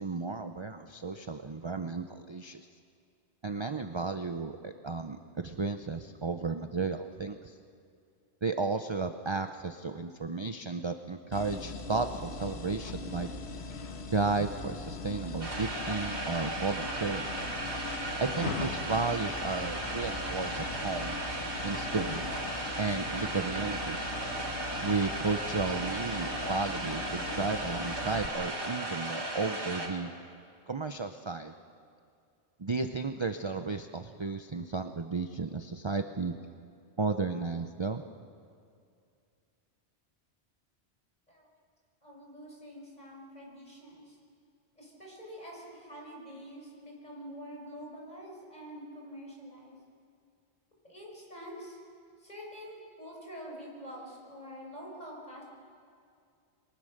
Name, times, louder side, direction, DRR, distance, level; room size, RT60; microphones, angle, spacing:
voice 1, 0.0-2.6 3.4-7.5 8.4-13.3 14.1-17.3 18.2-21.2 21.6-22.2 22.8-24.0 24.8-30.1 30.7-31.6 32.6-36.3 37.0-38.0, right 4 dB, 30° right, 7 dB, 0.7 m, -33 dB
sound 1, 11.3-28.3, left 3 dB, 75° left, 1.6 m, -40 dB
sound 2, 15.4-29.9, right 1 dB, 85° right, 3.4 m, -36 dB
sound 3, 17.1-27.6, equal, 5° right, 3.9 m, -54 dB
voice 2, 42.0-44.2 44.8-49.8 50.8-51.8 52.2-55.4, equal, 40° left, -2 dB, 6.0 m, -46 dB
28.0 x 23.0 x 6.6 m, 2.4 s
omnidirectional pair, 1.1 m